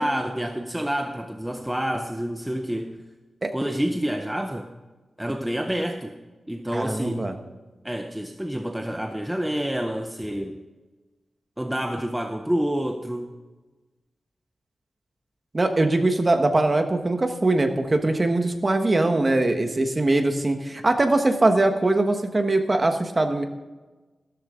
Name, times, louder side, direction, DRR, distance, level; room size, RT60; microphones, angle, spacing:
voice 1, 0.0-3.0 3.5-4.7 5.2-6.2 6.5-7.2 7.8-10.6 11.6-13.3, equal, 5° right, 5 dB, 0.7 m, -28 dB
voice 2, 6.7-7.3 15.5-23.4, right 2 dB, 25° right, 6 dB, 1.2 m, -22 dB
14.0 x 13.0 x 3.7 m, 1.2 s
wide cardioid pair, 145°, 0 cm